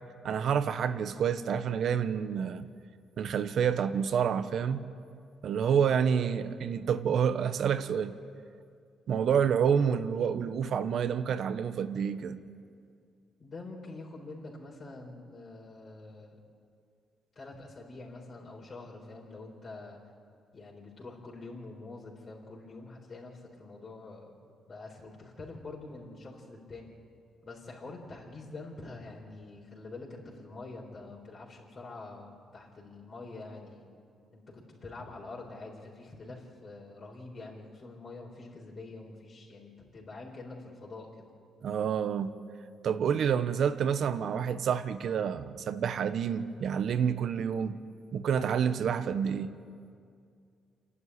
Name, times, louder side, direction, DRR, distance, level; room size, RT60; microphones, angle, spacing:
voice 1, 0.2-2.7 3.2-4.8 5.4-8.1 9.1-12.4 41.6-42.3 42.8-47.8 48.1-49.6, right 7 dB, 65° right, 1.1 m, -28 dB
voice 2, 13.4-16.4 17.3-20.0 20.5-24.3 24.7-26.9 27.4-33.8 34.3-41.2, left 3 dB, 40° left, 4.2 m, -46 dB
29.0 x 11.0 x 9.8 m
cardioid pair, 90°, 0 cm